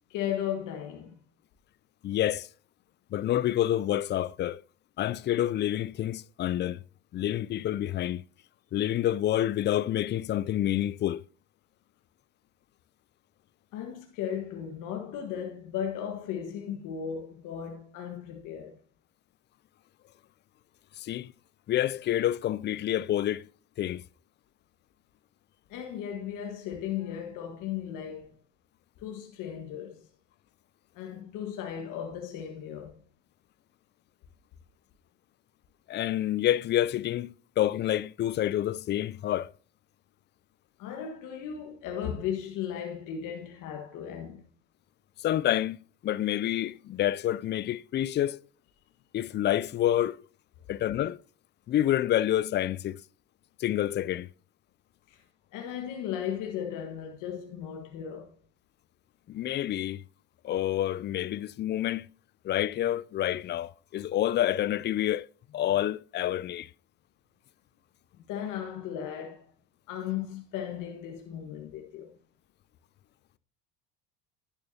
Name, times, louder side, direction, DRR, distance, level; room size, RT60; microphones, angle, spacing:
voice 1, 0.1-1.2 13.7-18.8 25.7-28.4 29.0-30.1 30.9-33.0 40.8-44.4 55.1-55.2 55.5-58.3 68.1-69.5 69.9-72.1, left 9 dB, 65° left, 1.6 m, -36 dB
voice 2, 2.0-2.5 3.1-4.6 5.0-6.8 7.1-8.2 8.7-11.2 21.0-21.3 21.7-23.4 23.8-24.0 35.9-39.5 45.2-45.8 46.0-48.4 49.1-50.2 50.7-51.2 51.7-53.0 53.6-54.3 59.3-60.0 60.4-62.1 62.4-65.3 65.5-66.7, left 12 dB, 35° left, 0.4 m, -28 dB
11.0 x 10.5 x 2.8 m
hypercardioid pair, 75°, 34 cm